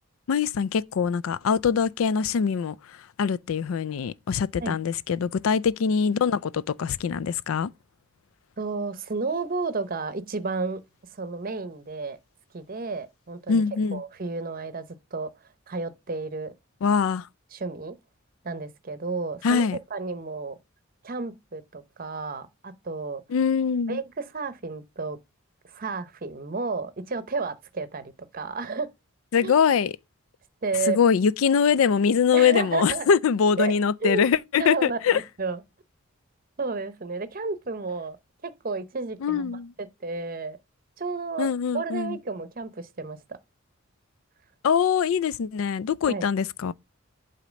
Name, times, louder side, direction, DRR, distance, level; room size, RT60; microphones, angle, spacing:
voice 1, 0.3-2.8 3.2-7.7 13.5-14.0 16.8-17.3 19.4-19.8 23.3-24.0 29.3-29.9 30.9-35.2 39.2-39.7 41.4-42.2 44.6-46.7, left 6 dB, 80° left, 0.4 m, -23 dB
voice 2, 8.6-10.8 11.1-12.2 12.5-13.6 13.9-14.9 15.1-15.3 15.7-16.5 17.5-17.9 18.4-20.6 21.0-23.2 23.9-25.2 25.6-28.9 29.4-29.5 30.6-31.0 32.3-33.1 33.6-34.3 34.6-35.6 36.6-38.2 38.4-40.6 41.0-43.2 46.0-46.3, right 4 dB, 45° right, 0.7 m, -32 dB
8.3 x 2.8 x 6.1 m
head